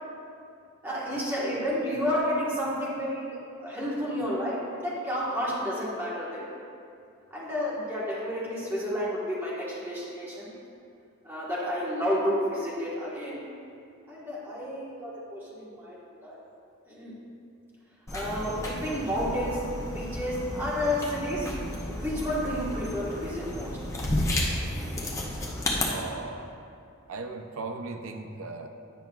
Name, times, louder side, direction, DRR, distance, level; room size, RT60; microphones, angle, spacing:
voice 1, 0.8-6.5 7.3-10.5 11.2-13.4 14.1-16.4 16.9-17.2 18.1-19.6 19.9-21.5 21.9-23.8, equal, 10° right, -7 dB, 1.2 m, -31 dB
sound 1, 18.1-25.9, left 1 dB, 15° left, 0.6 m, -32 dB
voice 2, 25.8-26.5 27.1-28.7, right 3 dB, 80° right, 5 dB, 0.5 m, -37 dB
9.2 x 5.6 x 2.3 m, 2.5 s
head